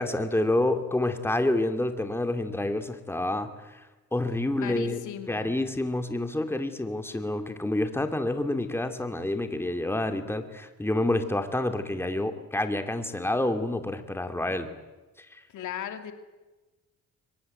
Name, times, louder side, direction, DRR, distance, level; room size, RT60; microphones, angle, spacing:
voice 1, 0.0-3.8 4.1-5.0 5.3-14.7 15.2-15.4, left 1 dB, 10° left, 7 dB, 2.7 m, -28 dB
voice 2, 4.6-5.5 15.5-16.1, left 9 dB, 80° left, 7 dB, 2.7 m, -36 dB
24.0 x 21.0 x 9.5 m, 1.2 s
cardioid pair, 90°, 30 cm